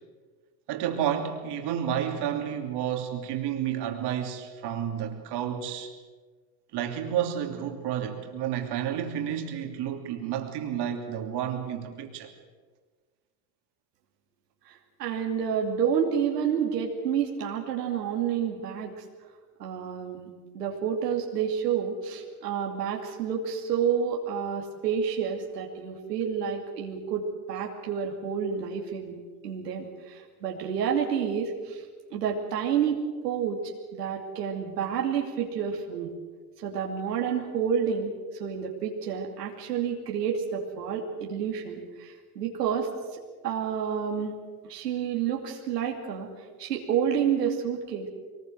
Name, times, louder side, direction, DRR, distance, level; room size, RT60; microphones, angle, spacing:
voice 1, 0.7-5.9 6.7-12.3, right 9 dB, 60° right, 4 dB, 3.0 m, -31 dB
voice 2, 14.7-19.0 19.6-20.3 20.5-31.8 32.1-36.1 36.6-38.1 38.4-42.9 43.4-44.3 44.7-46.3 46.6-48.1, right 7 dB, 90° right, 0 dB, 2.7 m, -29 dB
22.5 x 20.0 x 7.8 m, 1.4 s
hypercardioid pair, 80°, 47 cm